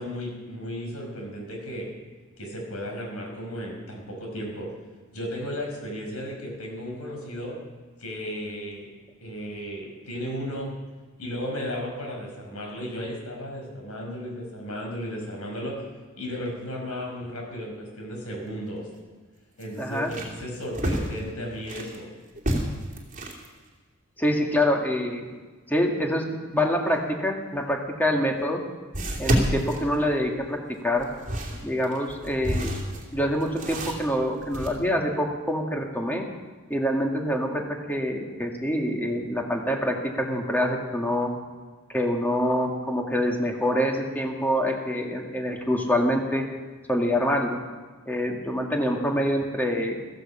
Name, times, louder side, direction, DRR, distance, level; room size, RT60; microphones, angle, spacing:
voice 1, 0.0-1.9 2.4-4.7 5.1-7.6 8.0-8.9 9.2-10.7 11.2-15.8 16.2-18.9 19.6-22.1, equal, 80° left, 0 dB, 5.4 m, -34 dB
sound 1, 18.4-18.5 18.9-19.0 19.6-22.0 22.4-23.5 27.7-27.8 28.9-30.5 31.0-34.7, right 1 dB, 35° right, 2.7 m, -29 dB
voice 2, 19.8-20.1 24.2-25.3 25.7-28.6 29.2-31.1 31.6-32.7 33.1-36.2 36.7-41.3 41.9-46.4 46.9-47.6 48.1-50.0, equal, 10° left, 1 dB, 2.0 m, -26 dB
15.0 x 14.5 x 5.6 m, 1.4 s
head